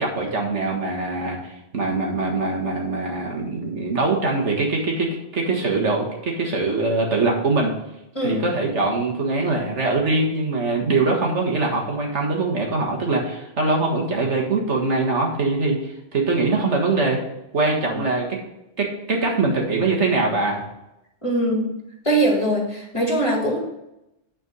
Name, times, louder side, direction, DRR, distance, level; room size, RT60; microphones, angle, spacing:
voice 1, 0.0-7.7 8.2-17.2 17.5-18.3 18.8-20.6, right 3 dB, 75° right, 0 dB, 1.9 m, -23 dB
voice 2, 21.2-21.7 22.0-23.6, right 1 dB, 25° left, -2 dB, 2.2 m, -21 dB
9.4 x 4.4 x 5.4 m, 0.88 s
omnidirectional pair, 1.2 m